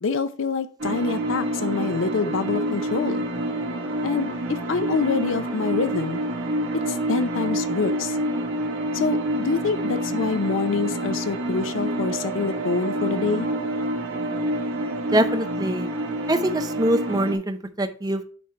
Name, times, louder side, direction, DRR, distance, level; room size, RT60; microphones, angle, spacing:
voice 1, 0.0-3.3 4.0-6.2 6.7-8.2 8.9-13.5, left 4 dB, 75° left, 11 dB, 0.5 m, -26 dB
sound 1, 0.8-17.3, right 1 dB, 80° right, 1.1 m, -27 dB
voice 2, 15.1-15.9 16.3-18.2, right 1 dB, 20° right, 6 dB, 0.5 m, -23 dB
9.2 x 3.3 x 4.3 m, 0.42 s
head